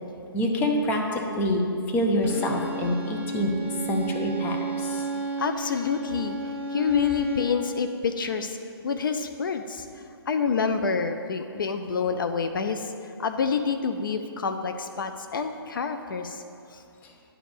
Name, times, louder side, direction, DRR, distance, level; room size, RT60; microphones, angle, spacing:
voice 1, 0.3-1.6 1.9-3.5 3.9-5.1 17.0-17.1, left 1 dB, 15° left, 2 dB, 0.6 m, -26 dB
Bowed string instrument, 2.2-7.7, right 2 dB, 10° right, 0.9 m, -33 dB
voice 2, 5.4-6.4 6.7-8.6 8.8-9.9 10.3-16.4 16.7-16.8, left 5 dB, 55° left, 7 dB, 0.4 m, -27 dB
9.9 x 3.4 x 6.5 m, 2.6 s
figure-of-eight pair, 135°, 13 cm